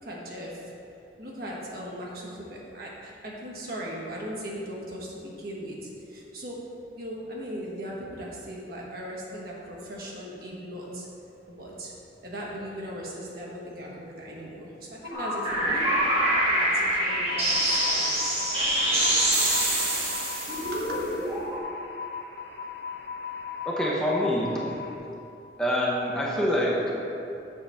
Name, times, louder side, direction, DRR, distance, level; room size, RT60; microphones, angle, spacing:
voice 1, 0.0-0.7 1.2-6.6 7.0-11.1 11.5-11.9 12.2-15.8 16.5-19.4 20.7-21.0, equal, 55° right, -4 dB, 1.3 m, -38 dB
sound 1, 15.0-25.0, left 6 dB, 60° left, 0.7 m, -38 dB
sound 2, 15.1-21.6, right 1 dB, 30° right, 1.3 m, -25 dB
voice 2, 23.6-24.6 25.6-27.0, equal, 5° left, -5 dB, 0.7 m, -25 dB
7.6 x 5.7 x 3.5 m, 2.8 s
head